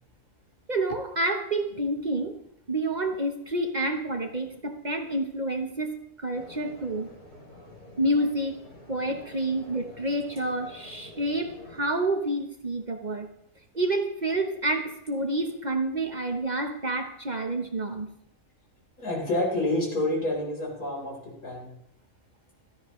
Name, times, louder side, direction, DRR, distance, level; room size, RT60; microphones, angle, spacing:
voice 1, 0.7-2.4 2.7-7.1 8.0-8.6 8.9-13.3 13.7-18.1, right 1 dB, 35° right, 5 dB, 1.0 m, -28 dB
sound 1, 6.3-11.8, left 1 dB, 30° left, 3.3 m, -48 dB
voice 2, 19.0-21.7, left 1 dB, 90° left, -2 dB, 4.7 m, -28 dB
16.0 x 13.5 x 3.2 m, 0.76 s
omnidirectional pair, 1.5 m